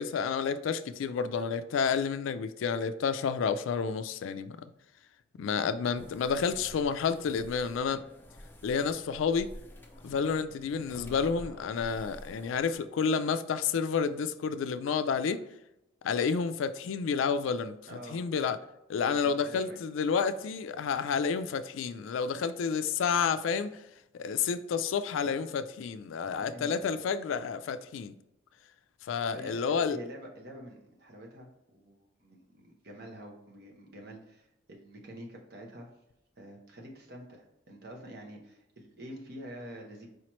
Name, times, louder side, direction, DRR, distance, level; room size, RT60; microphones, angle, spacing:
voice 1, 0.0-4.7 5.4-8.0 8.6-9.5 10.0-15.4 16.0-17.8 18.1-18.6 18.9-23.8 24.1-28.1 29.1-30.0, left 6 dB, 80° left, 0.3 m, -30 dB
sound 1, 5.9-12.7, left 1 dB, 10° left, 0.5 m, -49 dB
voice 2, 17.9-18.2 19.0-19.8 22.3-22.5 26.2-26.9 29.3-35.9 36.4-40.1, equal, 55° right, 0.9 m, -47 dB
4.9 x 3.0 x 3.0 m
head